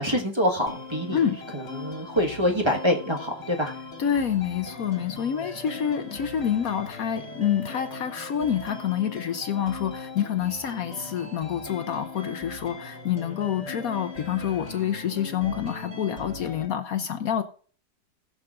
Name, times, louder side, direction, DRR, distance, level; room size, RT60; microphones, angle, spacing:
voice 1, 0.0-1.2 1.5-3.7, equal, 15° right, 0 dB, 1.3 m, -25 dB
sound 1, 0.7-16.7, left 3 dB, 40° left, 2.2 m, -40 dB
voice 2, 4.0-17.4, left 9 dB, 65° left, 9 dB, 1.1 m, -27 dB
20.0 x 6.8 x 2.5 m, 0.43 s
omnidirectional pair, 1.8 m